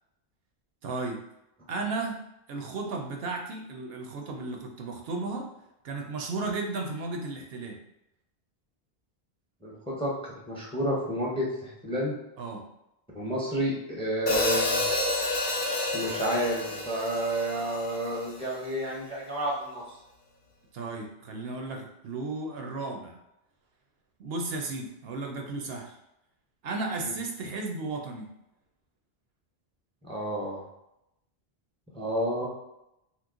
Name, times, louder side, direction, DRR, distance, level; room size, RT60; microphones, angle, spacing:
voice 1, 0.8-1.2 1.7-2.2 2.5-5.5 5.8-7.8 12.4-12.6 20.7-23.1 24.2-26.0 26.6-28.3, right 3 dB, 70° right, 2 dB, 0.8 m, -34 dB
voice 2, 9.6-12.1 13.1-14.8 15.9-20.0 27.0-27.1 30.0-30.6 31.9-32.5, right 1 dB, 5° left, -4 dB, 0.6 m, -30 dB
Hi-hat, 14.3-18.4, left 2 dB, 55° left, 0.7 m, -29 dB
3.0 x 2.1 x 3.6 m, 0.86 s
omnidirectional pair, 1.1 m